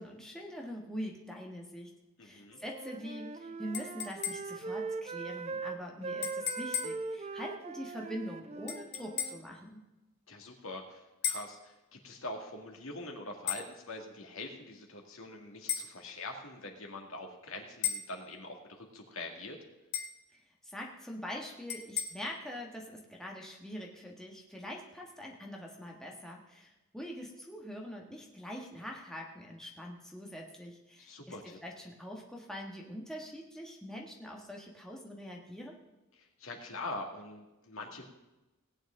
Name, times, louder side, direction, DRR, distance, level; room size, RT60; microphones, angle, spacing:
voice 1, 0.0-1.9 2.2-9.8 20.6-31.3 31.6-35.8, equal, 5° left, -1 dB, 1.5 m, -43 dB
voice 2, 2.2-2.6 10.3-19.6 31.0-31.6 36.2-38.0, left 2 dB, 70° left, 2 dB, 2.1 m, -44 dB
Wind instrument woodwind instrument, 2.6-9.4, right 4 dB, 30° right, 0.5 m, -40 dB
sound 1, 3.7-4.7 6.2-7.1 8.7-9.5 11.2-11.6 13.5-13.7 15.7-15.9 17.8-18.1 19.9-20.2 21.7-22.0, left 8 dB, 55° left, 1.3 m, -36 dB
18.0 x 9.3 x 3.8 m, 1.0 s
head